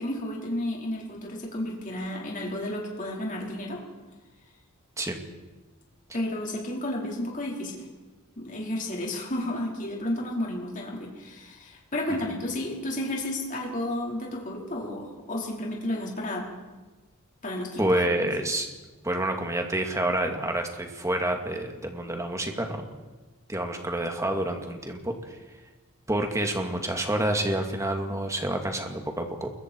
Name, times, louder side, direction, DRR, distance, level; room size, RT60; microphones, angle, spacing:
voice 1, 0.0-3.8 6.1-7.8 8.4-16.4 17.4-18.0 18.4-18.5, left 1 dB, 35° left, -2 dB, 4.9 m, -32 dB
voice 2, 17.8-18.7 19.0-22.8 23.5-25.4 26.1-29.5, right 1 dB, 15° right, 4 dB, 2.3 m, -28 dB
28.5 x 22.0 x 4.7 m, 1.2 s
head